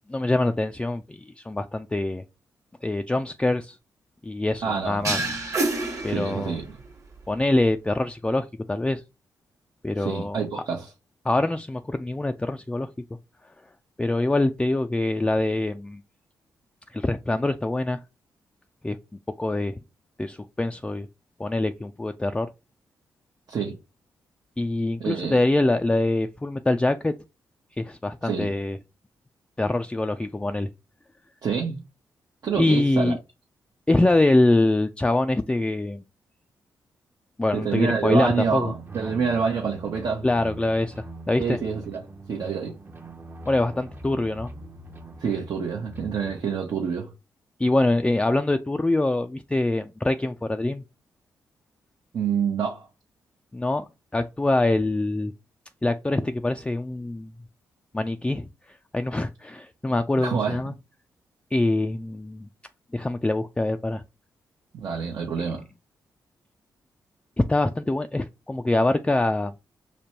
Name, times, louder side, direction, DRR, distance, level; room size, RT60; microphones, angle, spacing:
voice 1, 0.1-2.2 2.8-3.8 4.2-5.2 6.0-6.6 7.3-9.0 9.8-10.4 11.3-12.9 14.0-16.0 16.9-18.0 18.8-19.0 19.4-19.7 20.2-21.1 21.4-22.5 24.6-27.1 27.8-28.8 29.6-30.7 32.6-33.2 33.9-36.0 37.4-38.7 40.2-41.6 43.5-44.5 47.6-50.8 53.5-53.9 54.1-55.3 55.8-57.3 57.9-58.5 58.9-60.7 61.5-62.5 62.9-64.0 65.4-65.5 67.4-69.5, left 2 dB, 15° left, 0.3 m, -24 dB
voice 2, 4.6-5.1 6.1-6.7 10.0-10.9 23.5-23.7 25.0-25.4 28.2-28.5 31.4-31.8 32.4-33.2 37.5-40.3 41.4-42.8 45.2-47.1 52.1-52.9 59.9-60.7 64.7-65.6, right 6 dB, 65° right, 0.8 m, -27 dB
sound 1, 5.0-6.8, right 2 dB, 45° right, 1.3 m, -28 dB
sound 2, 37.8-46.4, right 2 dB, 30° right, 0.7 m, -42 dB
5.1 x 2.2 x 2.9 m
supercardioid pair, 50°, 7 cm